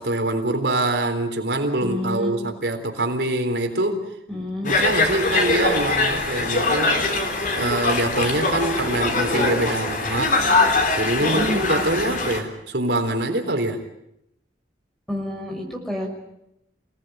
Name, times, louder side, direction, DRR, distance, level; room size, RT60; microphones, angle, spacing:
voice 1, 0.0-4.0 4.4-7.0 7.5-10.4 11.0-13.8, right 2 dB, 75° right, 5 dB, 3.9 m, -24 dB
voice 2, 1.8-2.3 4.3-4.7 11.2-11.6 15.1-16.1, left 1 dB, ahead, 2 dB, 5.9 m, -29 dB
Conversation, 4.6-12.4, left 3 dB, 45° left, 3.7 m, -22 dB
28.0 x 18.5 x 9.2 m, 0.83 s
head